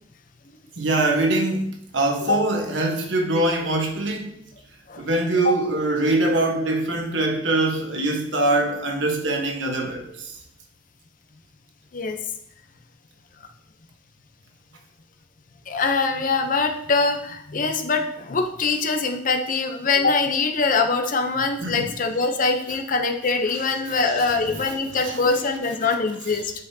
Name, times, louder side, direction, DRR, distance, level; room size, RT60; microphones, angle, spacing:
voice 1, 0.8-4.4 5.0-10.4 21.6-22.0 23.9-25.4 25.8-25.9 26.3-26.4, right 2 dB, 75° right, 1.2 m, -24 dB
voice 2, 15.7-26.5, left 4 dB, 45° left, 0.7 m, -23 dB
9.3 x 5.5 x 2.7 m
head